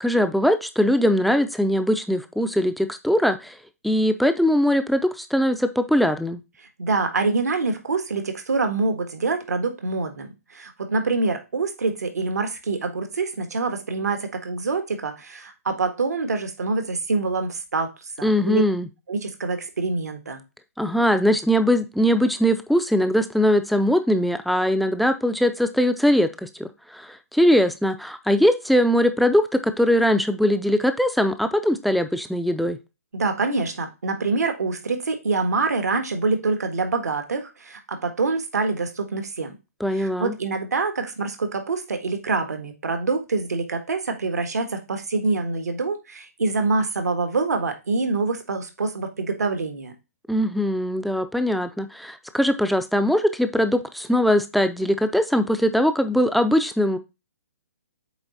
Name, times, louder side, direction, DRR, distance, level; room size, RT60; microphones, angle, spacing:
voice 1, 0.0-3.6 3.8-6.4 18.2-18.9 20.8-32.8 39.8-40.3 50.3-57.0, equal, ahead, 8 dB, 0.4 m, -21 dB
voice 2, 6.8-17.9 18.2-18.6 19.1-20.4 33.1-39.5 39.9-49.9, right 3 dB, 85° right, 6 dB, 1.6 m, -25 dB
8.0 x 3.2 x 4.1 m, 0.26 s
hypercardioid pair, 150°, 9 cm